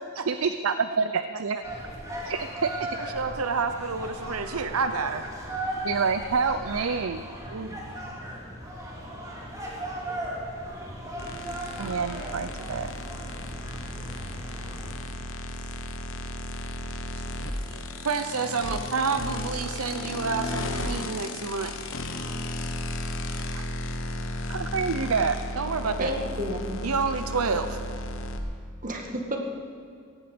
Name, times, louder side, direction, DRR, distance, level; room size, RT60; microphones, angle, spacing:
voice 1, 0.3-1.6 2.3-2.7 5.8-7.2 11.8-12.9 24.5-25.3, right 5 dB, 65° right, 11 dB, 0.5 m, -27 dB
sound 1, 1.6-14.9, right 1 dB, 15° right, 2.9 m, -37 dB
voice 2, 3.0-5.3 7.5-7.8 17.3-21.7 23.5-23.7 25.6-26.1 26.8-27.8, right 4 dB, 90° right, 9 dB, 0.9 m, -29 dB
sound 2, 11.2-28.4, left 1 dB, 65° left, 1.3 m, -34 dB
voice 3, 26.0-26.9 28.8-29.4, equal, 40° right, 2 dB, 2.0 m, -31 dB
17.0 x 15.5 x 5.2 m, 2.3 s
head